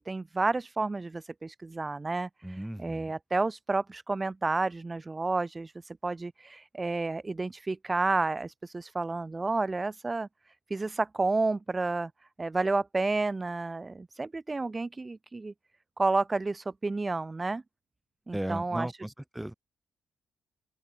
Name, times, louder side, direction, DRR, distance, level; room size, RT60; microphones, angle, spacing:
voice 1, 0.0-10.3 10.7-12.1 12.4-15.5 16.0-17.6 18.3-18.9, right 3 dB, 20° right, 0.5 m, -30 dB
voice 2, 2.4-3.1 18.3-19.5, right 1 dB, 5° right, 3.8 m, -36 dB
open air
cardioid pair, 90°, 0 cm